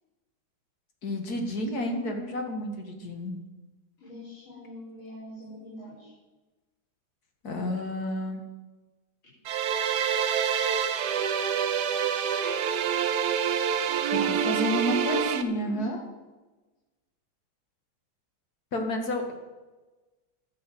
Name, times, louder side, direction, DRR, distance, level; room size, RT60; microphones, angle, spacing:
voice 1, 1.0-3.4 7.4-8.4 14.5-16.0 18.7-19.3, left 1 dB, 50° left, 3 dB, 2.3 m, -30 dB
voice 2, 4.0-6.1 14.1-15.0 15.3-16.0, left 2 dB, 85° left, -9 dB, 6.3 m, -42 dB
sound 1, 9.5-15.4, right 8 dB, 60° right, 1.2 m, -26 dB
12.0 x 9.9 x 7.7 m, 1.2 s
omnidirectional pair, 2.2 m